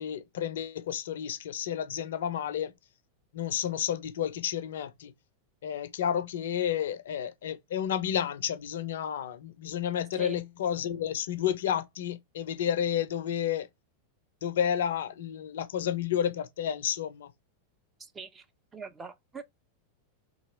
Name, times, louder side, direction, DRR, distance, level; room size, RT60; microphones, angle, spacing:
voice 1, 0.0-2.7 3.3-5.1 5.6-13.7 14.4-17.3, left 9 dB, 60° left, 0.4 m, -31 dB
voice 2, 18.0-18.5 18.7-19.4, right 5 dB, 20° right, 0.5 m, -43 dB
2.9 x 2.8 x 2.7 m
figure-of-eight pair, 90°, 0 cm